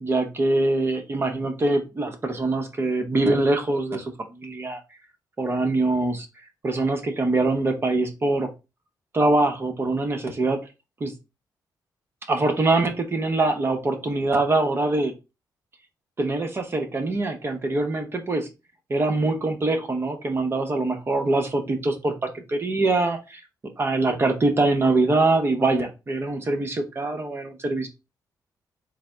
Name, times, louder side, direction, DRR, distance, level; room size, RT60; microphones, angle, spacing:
voice 1, 0.0-4.8 5.4-6.3 6.6-8.5 9.1-10.6 11.0-11.1 12.3-15.1 16.2-18.5 18.9-23.4 23.8-27.9, right 2 dB, 35° right, 5 dB, 0.8 m, -23 dB
4.0 x 2.0 x 3.3 m, 0.26 s
cardioid pair, 100°, 7 cm